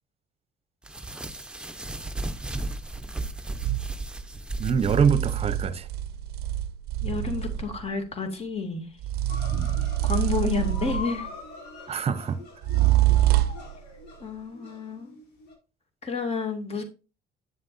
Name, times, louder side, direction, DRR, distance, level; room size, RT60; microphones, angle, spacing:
sound 1, 0.8-5.6, right 2 dB, 5° right, 0.9 m, -35 dB
sound 2, 3.6-3.9 4.8-7.8 9.0-11.3 12.6-13.7, right 14 dB, 70° right, 0.5 m, -25 dB
voice 1, 4.6-5.9 9.5-9.7 11.9-12.4, right 6 dB, 35° right, 0.9 m, -25 dB
voice 2, 7.0-8.9 10.0-11.3 11.9-12.0 14.2-15.1 16.0-16.8, left 4 dB, 35° left, 2.5 m, -30 dB
sound 3, 9.3-15.5, left 4 dB, 85° left, 4.5 m, -42 dB
9.1 x 7.5 x 2.7 m
cardioid pair, 110°, 17 cm